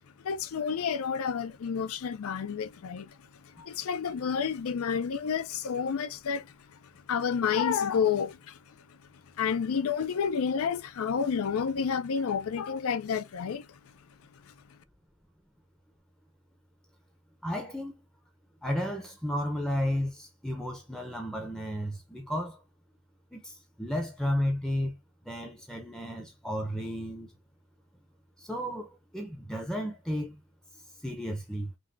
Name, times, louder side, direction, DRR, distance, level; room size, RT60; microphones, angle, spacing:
voice 1, 0.2-3.2 3.6-6.5 7.1-8.6 9.4-13.7, left 6 dB, 70° left, 0.4 m, -30 dB
voice 2, 17.4-17.9 18.6-22.6 23.3-25.0 25.3-27.3 28.4-28.9 29.1-30.4 31.0-31.7, equal, 5° left, 0.6 m, -33 dB
5.3 x 2.2 x 2.5 m
head